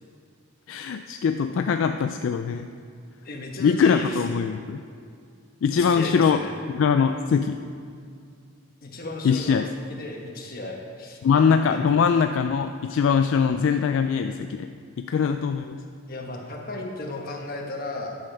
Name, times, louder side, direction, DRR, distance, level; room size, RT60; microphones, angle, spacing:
voice 1, 0.7-2.7 3.6-4.8 5.6-6.4 6.7-7.6 9.2-9.7 11.2-14.7 15.0-15.8, left 6 dB, 65° left, 7 dB, 0.3 m, -22 dB
voice 2, 3.2-4.5 5.7-6.6 8.8-11.2 11.7-11.8 16.1-18.2, left 2 dB, 45° left, 0 dB, 1.2 m, -35 dB
11.0 x 6.6 x 5.2 m, 2.3 s
head